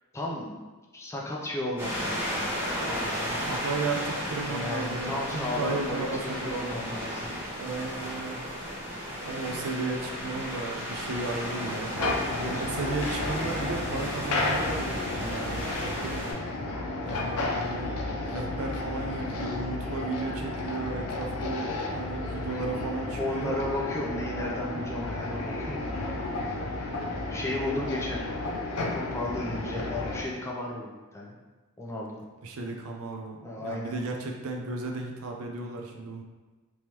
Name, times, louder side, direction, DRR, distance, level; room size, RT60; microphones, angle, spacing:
voice 1, 0.1-0.6 0.9-3.5 4.5-7.4 8.9-9.1 12.4-12.5 23.2-25.9 26.4-26.6 27.3-28.2 28.9-31.4 31.8-32.1 33.4-34.0 35.6-35.7, left 1 dB, 10° left, -2 dB, 0.4 m, -34 dB
sound 1, 1.8-16.3, equal, 10° right, 1.0 m, -34 dB
voice 2, 3.4-6.8 7.6-8.4 9.2-16.2 17.0-18.0 18.3-23.6 32.4-36.2, right 3 dB, 70° right, 2 dB, 0.5 m, -34 dB
sound 2, 11.9-30.2, left 2 dB, 80° left, 0.6 m, -32 dB
3.5 x 3.0 x 2.9 m, 1.3 s
head